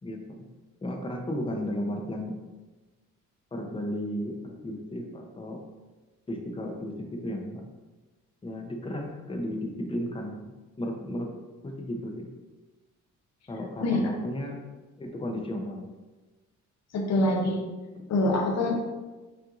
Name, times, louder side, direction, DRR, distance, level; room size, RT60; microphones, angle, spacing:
voice 1, 0.0-0.5 0.8-2.4 3.5-5.6 6.3-7.7 8.4-11.3 11.6-12.3 13.5-14.6 15.0-15.9 18.0-18.1, left 1 dB, 20° left, 2 dB, 0.6 m, -34 dB
voice 2, 16.9-17.6 18.1-18.8, left 1 dB, 60° left, 2 dB, 0.8 m, -25 dB
5.5 x 2.5 x 2.5 m, 1.2 s
cardioid pair, 90°, 30 cm